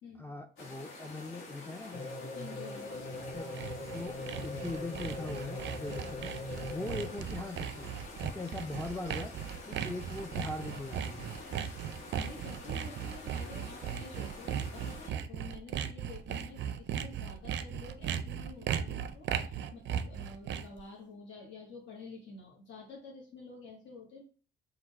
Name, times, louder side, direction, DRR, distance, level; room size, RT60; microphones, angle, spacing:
voice 1, 0.2-2.2 3.3-4.2 4.4-7.9 8.2-9.3 9.6-11.3, left 2 dB, 10° left, 3 dB, 0.3 m, -41 dB
sound 1, 0.6-15.1, left 2 dB, 85° left, 1.3 m, -48 dB
sound 2, 1.9-7.4, left 2 dB, 35° left, 0.9 m, -42 dB
voice 2, 2.3-3.1 12.2-24.2, left 4 dB, 65° left, -2 dB, 1.3 m, -49 dB
Sawing, 3.0-20.8, right 9 dB, 65° right, 0.4 m, -37 dB
3.8 x 2.4 x 4.4 m, 0.40 s
cardioid pair, 90°, 20 cm